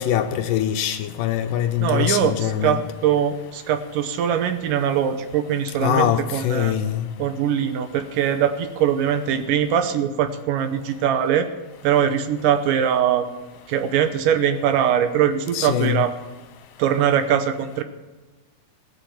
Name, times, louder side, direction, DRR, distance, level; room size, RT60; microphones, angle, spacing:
voice 1, 0.0-2.8 5.8-7.0 15.5-16.0, left 11 dB, 80° left, 8 dB, 2.2 m, -23 dB
voice 2, 1.8-6.8 7.2-11.5 11.8-13.3 13.7-16.1 16.8-17.8, right 9 dB, 75° right, 9 dB, 2.3 m, -22 dB
17.5 x 7.3 x 7.1 m, 1.3 s
omnidirectional pair, 4.1 m